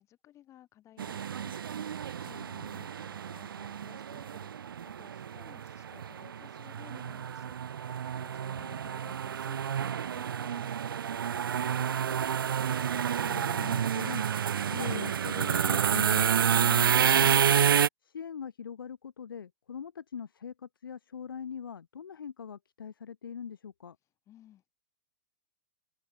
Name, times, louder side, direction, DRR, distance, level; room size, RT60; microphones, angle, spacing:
voice 1, 0.0-12.2 24.3-24.7, left 12 dB, 25° left, 5.0 m, -58 dB
sound 1, 1.0-17.9, right 8 dB, 85° right, 0.9 m, -29 dB
voice 2, 2.3-2.9 8.6-9.1 13.2-17.4 18.0-24.0, left 7 dB, 90° left, 4.1 m, -42 dB
open air
hypercardioid pair, 135°, 11 cm